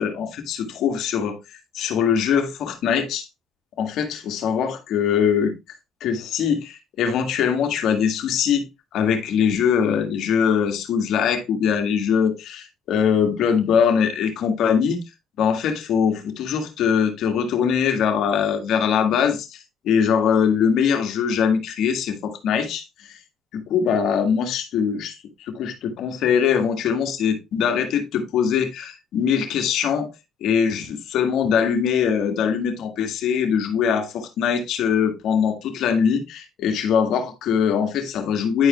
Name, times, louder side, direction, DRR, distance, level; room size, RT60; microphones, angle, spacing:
voice 1, 0.0-1.4 1.7-3.3 3.8-5.6 6.0-8.7 8.9-15.0 15.4-23.2 23.5-30.1 30.4-38.7, left 7 dB, 70° left, 1.9 m, -22 dB
10.5 x 4.8 x 3.1 m
cardioid pair, 85°, 0 cm